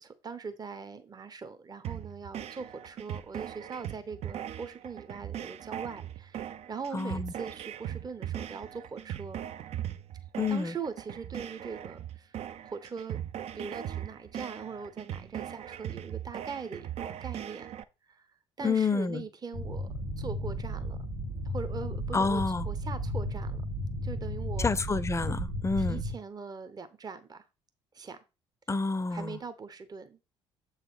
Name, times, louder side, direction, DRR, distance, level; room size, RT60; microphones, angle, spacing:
voice 1, 0.0-9.4 10.5-13.2 13.5-17.7 18.1-18.3 18.6-19.9 20.2-21.1 21.4-23.6 24.0-24.7 25.8-27.4 27.9-28.2 29.1-30.2, right 5 dB, 30° right, 0.9 m, -41 dB
sound 1, 1.8-17.8, right 10 dB, 50° right, 0.5 m, -39 dB
voice 2, 6.9-7.3 10.4-10.7 18.6-19.2 22.1-22.7 24.6-26.0 28.7-29.4, left 4 dB, 20° left, 0.6 m, -28 dB
sound 2, 19.5-26.1, equal, 80° right, 1.9 m, -34 dB
7.3 x 4.1 x 4.8 m
figure-of-eight pair, 50°, 14 cm